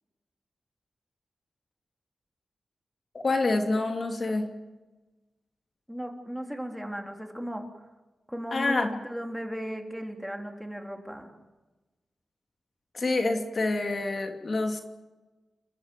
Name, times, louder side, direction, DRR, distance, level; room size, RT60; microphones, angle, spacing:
voice 1, 3.2-4.4 8.5-8.9 12.9-14.8, left 2 dB, 45° left, 4 dB, 2.6 m, -27 dB
voice 2, 5.9-7.7 8.3-11.3, equal, ahead, 3 dB, 3.4 m, -36 dB
30.0 x 14.5 x 9.2 m, 1.2 s
wide cardioid pair, 95°, 0 cm